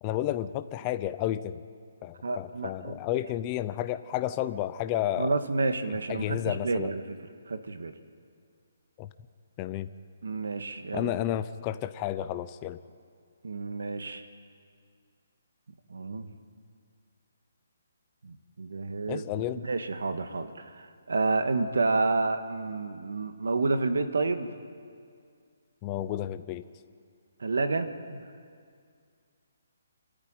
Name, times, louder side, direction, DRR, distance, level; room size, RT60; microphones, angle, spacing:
voice 1, 0.0-1.6 2.0-5.4 5.9-6.9 9.0-9.1 9.6-9.9 10.9-12.8 19.1-19.7 25.8-26.6, left 12 dB, 20° left, 11 dB, 0.6 m, -31 dB
voice 2, 2.2-3.0 5.2-7.2 7.5-7.9 10.2-11.1 13.4-14.3 15.9-16.3 18.2-19.3 19.6-24.5 27.4-28.2, right 3 dB, 90° right, 8 dB, 1.8 m, -30 dB
27.5 x 14.0 x 9.3 m, 2.2 s
hypercardioid pair, 175°, 0 cm